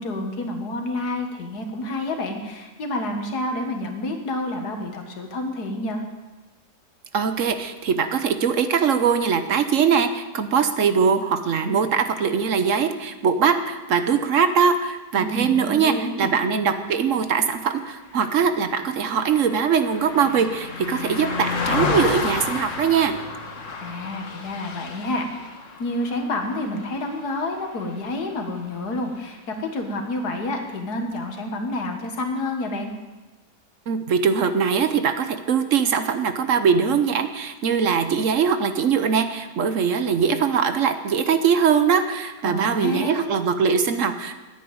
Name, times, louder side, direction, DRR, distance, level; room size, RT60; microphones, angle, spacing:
voice 1, 0.0-6.0 15.2-16.4 23.8-25.5 25.8-32.9 42.4-43.2, left 1 dB, 85° left, 4 dB, 2.2 m, -29 dB
voice 2, 7.1-23.1 33.9-44.3, right 6 dB, 60° right, 9 dB, 1.1 m, -21 dB
Car passing by, 18.2-27.7 28.1-28.3, left 4 dB, 55° left, 1.6 m, -31 dB
10.0 x 9.2 x 8.6 m, 1.2 s
omnidirectional pair, 1.6 m